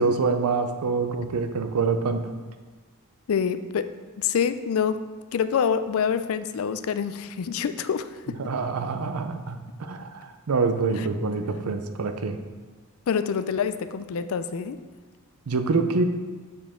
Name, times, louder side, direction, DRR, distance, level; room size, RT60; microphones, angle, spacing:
voice 1, 0.0-2.3 8.4-12.4 15.5-16.0, right 4 dB, 90° right, 7 dB, 0.6 m, -26 dB
voice 2, 3.3-3.9 4.2-5.0 5.3-8.4 10.9-11.1 13.1-14.8, left 7 dB, 70° left, 12 dB, 0.4 m, -26 dB
7.1 x 4.9 x 3.7 m, 1.3 s
head